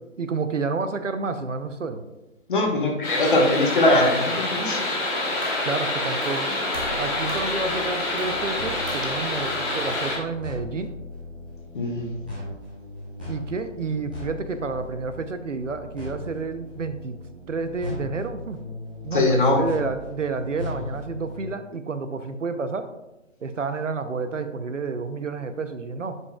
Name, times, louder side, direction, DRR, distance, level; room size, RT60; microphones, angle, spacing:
voice 1, 0.2-2.0 5.6-6.5 7.0-10.9 13.3-17.2 17.5-18.6 19.0-22.9 23.4-26.2, right 4 dB, 70° right, 10 dB, 0.7 m, -30 dB
voice 2, 2.5-4.8 11.7-12.1 19.1-19.6, left 2 dB, 40° left, 0 dB, 1.4 m, -21 dB
sound 1, 3.0-10.2, left 2 dB, 20° left, 1.8 m, -27 dB
sound 2, 5.4-5.7 6.2-6.5 6.7-7.6 8.2-8.4 8.9-9.1, right 2 dB, 45° right, 1.5 m, -39 dB
sound 3, 6.7-21.5, left 2 dB, 5° right, 0.6 m, -38 dB
10.5 x 5.4 x 2.3 m, 0.98 s
figure-of-eight pair, 150°, 39 cm